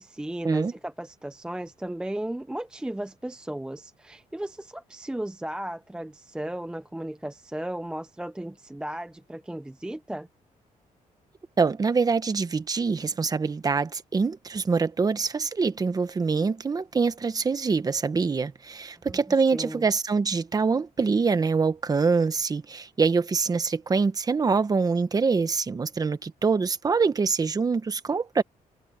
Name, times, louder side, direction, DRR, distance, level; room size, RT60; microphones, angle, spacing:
voice 1, 0.0-10.3 19.1-19.2 19.5-19.9, right 1 dB, 5° right, 0.5 m, -35 dB
voice 2, 11.6-28.4, right 4 dB, 25° right, 1.1 m, -25 dB
cardioid pair, 145°, 15 cm